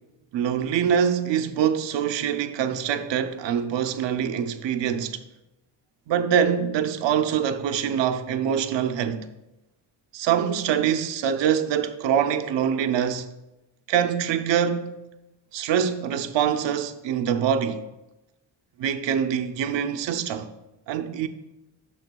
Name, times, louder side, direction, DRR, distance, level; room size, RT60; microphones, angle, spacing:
voice 1, 0.3-5.2 6.1-9.3 10.1-13.3 13.9-14.9 15.5-17.9 18.8-20.5 20.9-21.3, right 8 dB, 80° right, 0.7 m, -24 dB
12.0 x 7.0 x 2.3 m
wide cardioid pair, 170°, 43 cm